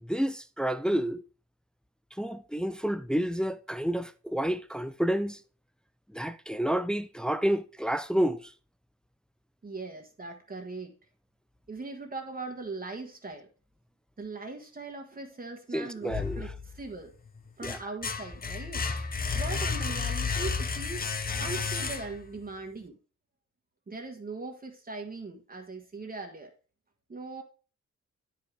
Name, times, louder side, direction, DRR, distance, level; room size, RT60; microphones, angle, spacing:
voice 1, 0.0-1.2 2.2-5.4 6.1-8.4 15.7-16.5 17.6-17.8, equal, 5° left, 0.4 m, -29 dB
voice 2, 9.6-10.9 11.7-13.5 14.2-17.1 17.6-18.9 19.3-21.1 21.4-23.0 23.9-26.5 27.1-27.4, right 3 dB, 30° right, 1.2 m, -40 dB
sound 1, 16.1-16.9 17.4-22.4, left 5 dB, 30° left, 0.7 m, -32 dB
9.4 x 5.1 x 3.4 m
cardioid pair, 110°, 30 cm